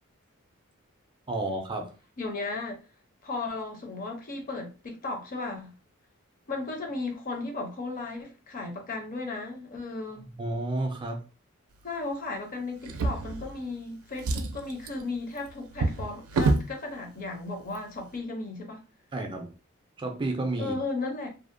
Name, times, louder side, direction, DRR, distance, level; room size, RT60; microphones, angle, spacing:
voice 1, 1.3-1.9 10.4-11.2 19.1-19.5 20.0-20.8, right 2 dB, 25° right, 0.3 m, -31 dB
voice 2, 2.2-2.8 3.2-5.7 6.5-10.3 11.8-18.8 20.6-21.3, left 3 dB, 40° left, 0.6 m, -35 dB
Drawer open or close, 12.8-13.8 14.1-16.7 17.6-17.8 18.1-18.2, right 2 dB, 90° right, 0.4 m, -29 dB
2.7 x 2.0 x 2.5 m
head